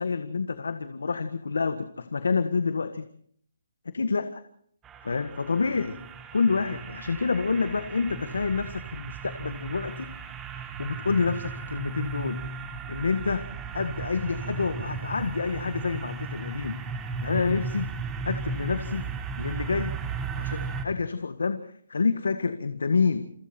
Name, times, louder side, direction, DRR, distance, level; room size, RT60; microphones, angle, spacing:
voice 1, 0.0-3.0 3.9-4.4 5.0-6.0 6.3-10.1 10.5-12.4 12.9-13.5 13.7-16.8 17.2-17.9 18.2-19.1 19.4-20.0 20.3-23.5, left 4 dB, 80° left, 9 dB, 1.7 m, -28 dB
sound 1, 4.8-20.8, right 5 dB, 10° right, 1.5 m, -36 dB
28.5 x 23.5 x 4.5 m, 0.64 s
hypercardioid pair, 170°, 0 cm